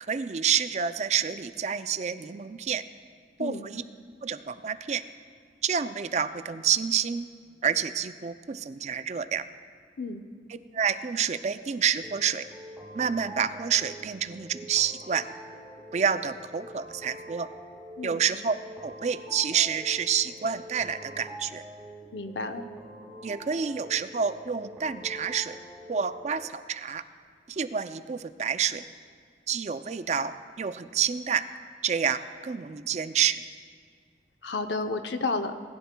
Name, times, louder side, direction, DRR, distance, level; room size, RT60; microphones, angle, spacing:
voice 1, 0.0-2.8 3.4-3.8 4.2-5.0 5.6-7.3 7.6-9.4 10.7-12.5 12.9-15.3 15.9-17.5 18.0-18.6 18.8-21.6 23.2-25.6 25.9-27.0 27.5-28.8 29.5-31.4 31.8-33.4, right 7 dB, 40° right, 12 dB, 0.4 m, -28 dB
sound 1, 12.0-26.5, equal, 10° right, 0.8 m, -45 dB
voice 2, 22.1-22.7 34.4-35.5, left 3 dB, 75° left, 8 dB, 0.7 m, -31 dB
20.5 x 11.5 x 2.2 m, 2.1 s
head